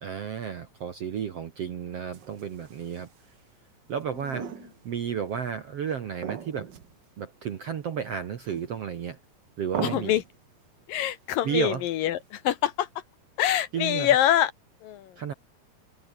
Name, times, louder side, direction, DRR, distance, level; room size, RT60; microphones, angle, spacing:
voice 1, 0.0-3.1 3.9-6.7 7.2-9.2 9.6-10.1 11.4-11.8 13.7-14.1 15.2-15.3, right 8 dB, 60° right, 1.7 m, -32 dB
sound 1, 2.1-3.2 4.0-5.0 5.3-5.4 6.2-7.0 7.3-7.4 8.4-9.0 9.7-10.4 12.0-12.4, right 7 dB, 80° right, 0.9 m, -38 dB
voice 2, 9.8-10.2 10.9-12.9 13.4-14.5 14.8-15.2, left 12 dB, 70° left, 2.4 m, -25 dB
omnidirectional pair, 4.6 m